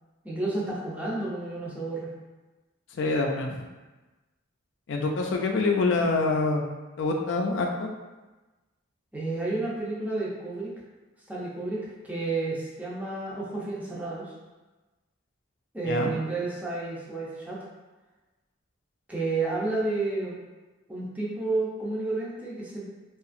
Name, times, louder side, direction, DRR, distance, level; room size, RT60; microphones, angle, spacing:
voice 1, 0.2-2.1 9.1-10.7 11.3-14.3 15.7-17.6 19.1-20.4 20.9-22.8, right 3 dB, 10° right, -6 dB, 0.5 m, -31 dB
voice 2, 2.9-3.6 4.9-6.7 7.0-7.9 15.9-16.1, left 3 dB, 65° left, 2 dB, 0.4 m, -26 dB
2.7 x 2.4 x 2.5 m, 1.2 s
head